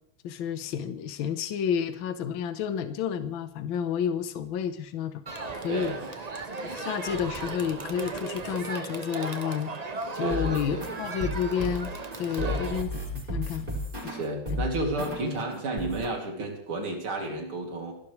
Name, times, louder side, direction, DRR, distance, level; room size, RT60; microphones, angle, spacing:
voice 1, 0.2-5.2 5.5-5.9 6.6-9.7 10.1-11.9 12.2-13.7 14.5-14.6, left 8 dB, 70° left, 10 dB, 1.7 m, -30 dB
Crowd, 5.3-12.8, right 3 dB, 40° right, 0.5 m, -36 dB
voice 2, 5.7-6.1 10.1-10.9 12.3-12.7 14.1-18.0, right 2 dB, 75° right, 1 dB, 3.6 m, -32 dB
sound 1, 10.3-15.4 15.8-16.2, left 1 dB, 20° right, 4.3 m, -34 dB
28.0 x 12.0 x 3.2 m, 0.70 s
omnidirectional pair, 2.4 m